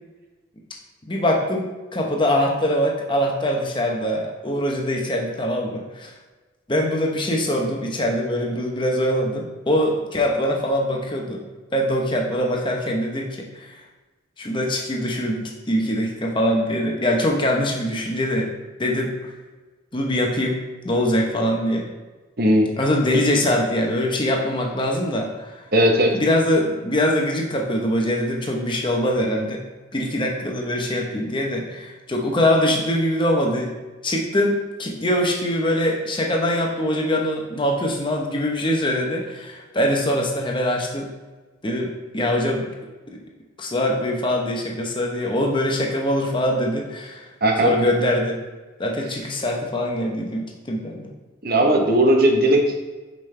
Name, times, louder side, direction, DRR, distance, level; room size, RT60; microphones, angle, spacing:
voice 1, 1.1-6.1 6.7-11.4 11.7-13.7 14.4-15.4 15.7-18.5 18.8-19.3 19.9-21.9 22.8-25.5 26.1-29.6 29.9-33.7 34.0-41.1 41.6-42.6 43.6-47.2 47.6-48.4 48.8-51.1, left 1 dB, 25° left, 0 dB, 0.9 m, -23 dB
voice 2, 22.4-22.7 25.7-26.1 47.4-47.7 51.4-52.7, right 1 dB, 50° right, 2 dB, 0.9 m, -17 dB
5.6 x 5.2 x 3.3 m, 1.3 s
head